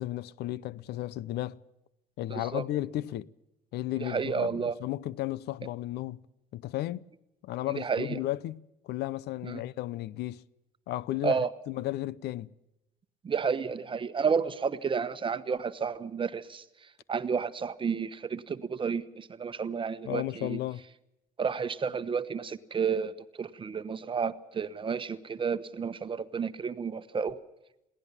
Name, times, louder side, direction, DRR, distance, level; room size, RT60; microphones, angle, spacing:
voice 1, 0.0-1.6 2.2-3.3 3.7-6.2 6.5-7.1 7.4-10.4 10.9-11.4 11.7-12.5 20.0-20.8, left 15 dB, 75° left, 0.7 m, -34 dB
voice 2, 2.3-2.6 4.0-4.7 7.7-8.2 9.4-9.6 11.2-11.5 13.2-16.6 17.1-20.6 21.4-27.4, right 6 dB, 30° right, 1.1 m, -31 dB
22.0 x 17.5 x 7.2 m
cardioid pair, 110°, 17 cm